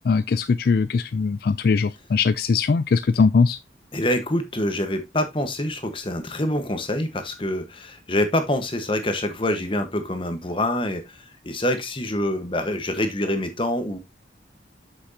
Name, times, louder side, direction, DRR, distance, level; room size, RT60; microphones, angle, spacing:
voice 1, 0.0-3.6, left 4 dB, 50° left, 0.3 m, -20 dB
voice 2, 3.9-14.0, left 1 dB, 25° left, 1.2 m, -26 dB
8.1 x 6.1 x 2.8 m
head